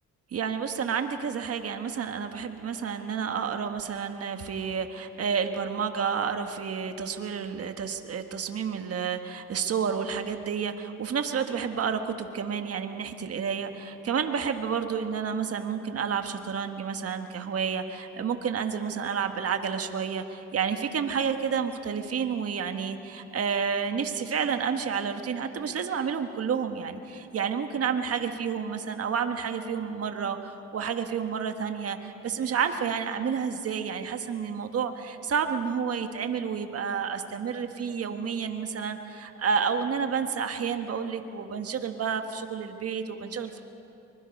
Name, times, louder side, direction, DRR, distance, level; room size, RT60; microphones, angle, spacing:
voice 1, 0.3-43.6, right 6 dB, 50° right, 6 dB, 1.5 m, -30 dB
24.0 x 21.5 x 5.3 m, 2.9 s
cardioid pair, 90°, 30 cm